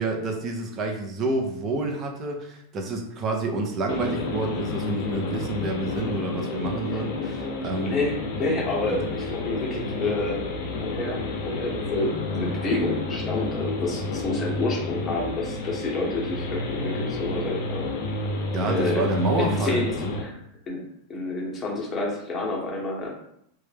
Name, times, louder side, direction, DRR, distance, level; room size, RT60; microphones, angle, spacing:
voice 1, 0.0-8.0 18.5-20.2, right 2 dB, 35° right, 2 dB, 0.6 m, -28 dB
sound 1, 3.9-20.2, left 2 dB, 65° left, 0.5 m, -30 dB
voice 2, 7.8-10.4 10.8-17.9 18.7-20.4 20.7-20.8 21.1-23.1, left 2 dB, 25° left, -2 dB, 0.9 m, -29 dB
2.2 x 2.0 x 3.2 m, 0.72 s
hypercardioid pair, 115°, 0 cm